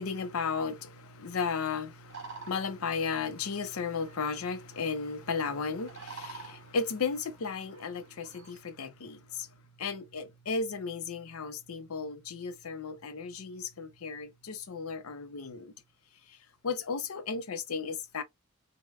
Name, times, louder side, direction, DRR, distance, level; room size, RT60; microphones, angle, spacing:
voice 1, 0.0-9.5 9.8-15.7 16.6-18.2, left 5 dB, 85° left, 0.6 m, -35 dB
sound 1, 2.1-8.6, right 4 dB, 60° right, 1.6 m, -50 dB
4.7 x 2.2 x 2.2 m
head